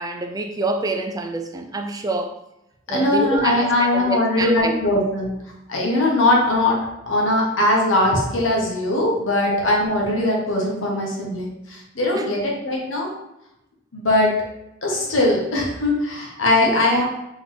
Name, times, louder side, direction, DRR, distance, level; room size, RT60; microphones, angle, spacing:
voice 1, 0.0-2.4 2.9-4.9 9.5-9.6 12.1-12.4 16.6-16.8, right 2 dB, 20° right, 5 dB, 0.4 m, -27 dB
voice 2, 2.9-5.3 5.7-6.8 7.1-13.1 13.9-14.3 14.8-17.0, left 1 dB, 80° left, -2 dB, 1.2 m, -20 dB
3.9 x 3.4 x 3.2 m, 0.88 s
head